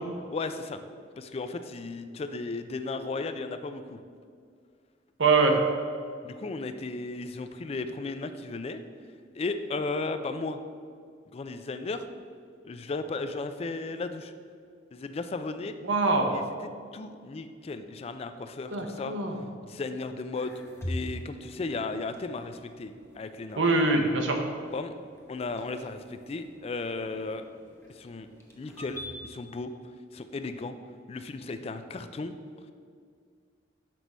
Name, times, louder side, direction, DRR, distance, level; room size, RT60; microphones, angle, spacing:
voice 1, 0.3-0.8 1.2-4.0 6.2-8.8 9.3-10.6 11.3-12.0 12.6-14.3 14.9-15.7 16.3-16.4 16.9-19.1 19.6-20.5 20.9-23.6 24.7-24.9 25.3-27.4 27.9-28.3 28.6-29.7 30.1-30.8 31.1-32.3, left 3 dB, 35° left, 9 dB, 0.3 m, -35 dB
voice 2, 5.2-5.6 15.8-16.4 18.7-19.4 23.6-24.4, right 3 dB, 85° right, 3 dB, 0.9 m, -23 dB
sound 1, 20.3-29.1, equal, 15° left, 0.8 m, -44 dB
6.0 x 4.6 x 5.3 m, 2.1 s
head